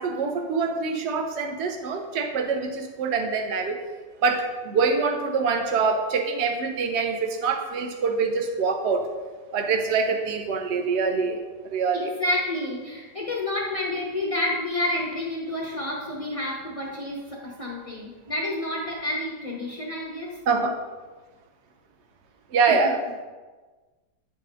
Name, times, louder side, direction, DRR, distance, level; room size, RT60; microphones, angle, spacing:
voice 1, 0.0-3.8 4.2-9.1 9.5-11.4 11.7-12.1 20.5-20.8 22.5-23.0, right 4 dB, 55° right, 4 dB, 0.8 m, -25 dB
voice 2, 11.9-20.4 22.7-22.8, left 1 dB, 50° left, -3 dB, 0.4 m, -29 dB
9.0 x 4.2 x 3.7 m, 1.3 s
omnidirectional pair, 1.9 m